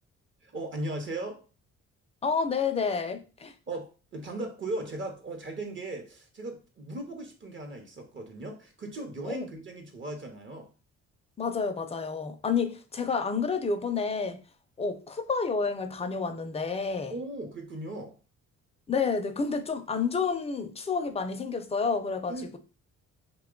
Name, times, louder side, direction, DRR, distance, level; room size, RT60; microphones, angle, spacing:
voice 1, 0.4-1.4 3.7-10.7 17.0-18.2 22.3-22.5, right 2 dB, 40° right, 0.8 m, -37 dB
voice 2, 2.2-3.5 9.3-9.5 11.4-14.4 14.8-17.1 18.9-22.6, left 5 dB, 20° left, 0.4 m, -29 dB
2.9 x 2.2 x 3.7 m
cardioid pair, 90°, 30 cm